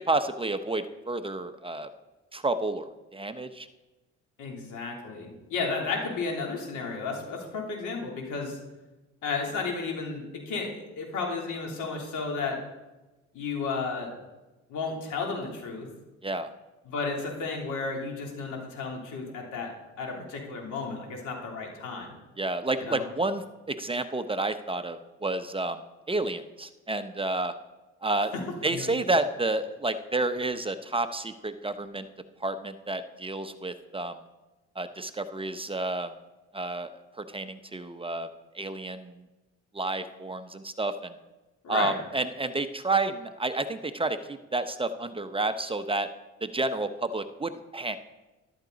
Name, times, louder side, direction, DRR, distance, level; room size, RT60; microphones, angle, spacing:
voice 1, 0.0-1.9 2.3-3.7 16.2-16.5 22.4-25.8 26.1-27.5 28.0-28.3 28.6-32.1 32.4-34.2 34.8-36.1 36.5-36.9 37.2-38.3 38.5-39.1 39.7-41.1 41.7-46.1 46.4-48.0, right 2 dB, 20° right, 9 dB, 0.7 m, -30 dB
voice 2, 4.4-8.6 9.2-12.6 13.3-14.1 14.7-15.9 16.8-19.7 20.0-22.1 22.8-23.0 28.7-28.9 41.6-42.0, left 4 dB, 85° left, 0 dB, 3.2 m, -33 dB
13.5 x 12.0 x 4.0 m, 1.1 s
cardioid pair, 90°, 30 cm